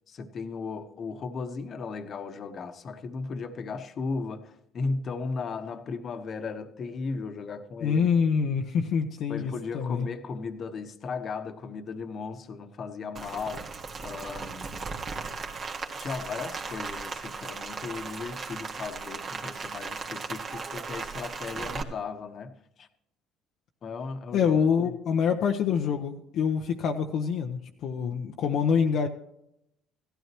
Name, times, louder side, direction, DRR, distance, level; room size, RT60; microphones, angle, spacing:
voice 1, 0.1-8.1 9.3-13.7 14.0-14.7 16.0-22.9 23.8-24.9, left 4 dB, 45° left, 1.3 m, -36 dB
voice 2, 7.8-10.1 24.3-29.1, left 6 dB, 65° left, 0.9 m, -26 dB
Rain, 13.1-21.8, right 4 dB, 40° right, 1.8 m, -37 dB
16.5 x 12.5 x 3.0 m
supercardioid pair, 85°, 0 cm